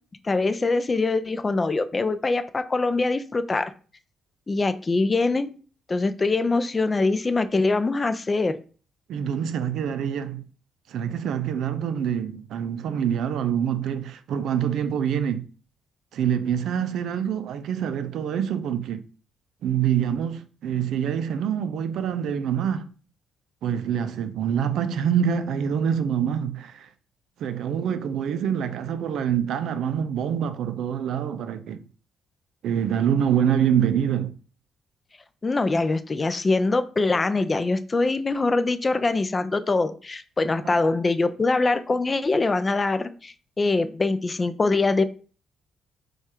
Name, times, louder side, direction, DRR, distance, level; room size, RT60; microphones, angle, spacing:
voice 1, 0.2-3.7 4.5-5.6 5.9-8.6 35.4-45.0, left 3 dB, 30° left, 0.4 m, -23 dB
voice 2, 9.1-10.5 10.9-15.5 16.1-19.0 19.6-22.9 23.6-26.9 27.4-31.9 32.6-34.4, right 8 dB, 75° right, 0.4 m, -25 dB
4.6 x 2.4 x 4.4 m
cardioid pair, 90°, 0 cm